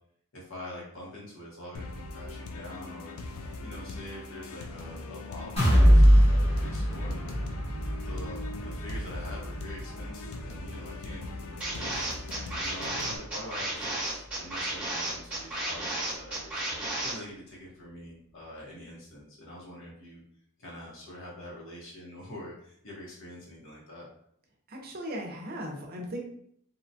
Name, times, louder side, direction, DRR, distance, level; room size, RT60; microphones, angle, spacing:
voice 1, 0.3-3.2 3.6-7.4 8.0-16.6 17.0-20.2 20.6-24.1, left 1 dB, 60° left, -5 dB, 1.0 m, -45 dB
sound 1, 1.7-13.2, left 2 dB, 80° left, 0.4 m, -41 dB
sound 2, 5.6-13.3 13.7-13.9 14.3-14.4, equal, 30° left, 0.8 m, -24 dB
sound 3, 11.6-17.1, right 1 dB, 5° right, 1.0 m, -33 dB
voice 2, 24.7-26.2, equal, 45° right, 0 dB, 0.6 m, -37 dB
2.9 x 2.2 x 2.6 m, 0.68 s
head